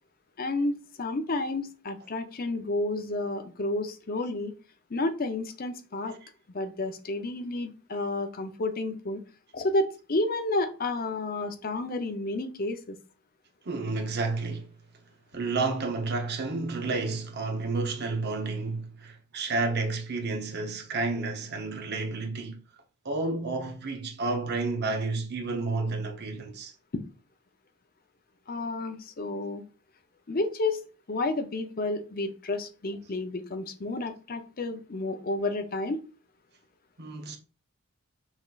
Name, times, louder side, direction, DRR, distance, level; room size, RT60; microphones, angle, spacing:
voice 1, 0.4-4.5 4.9-6.2 6.5-9.2 9.5-13.0 26.9-27.0 28.5-29.6 30.3-30.8 31.1-36.0, left 2 dB, 45° left, 0.6 m, -31 dB
voice 2, 13.6-14.7 15.3-22.6 23.0-26.7 37.0-37.4, right 3 dB, 50° right, 0.9 m, -31 dB
5.6 x 3.2 x 2.4 m
head